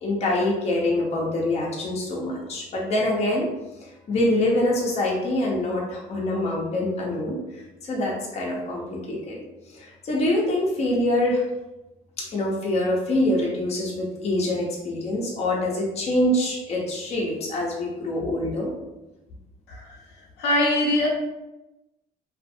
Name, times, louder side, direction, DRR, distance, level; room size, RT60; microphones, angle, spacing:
voice 1, 0.0-3.5 4.1-7.4 7.8-11.4 12.2-18.7, left 1 dB, 40° left, -3 dB, 0.7 m, -25 dB
voice 2, 20.4-21.1, left 1 dB, 80° left, -3 dB, 0.7 m, -22 dB
2.4 x 2.4 x 2.6 m, 0.99 s
cardioid pair, 110°, 17 cm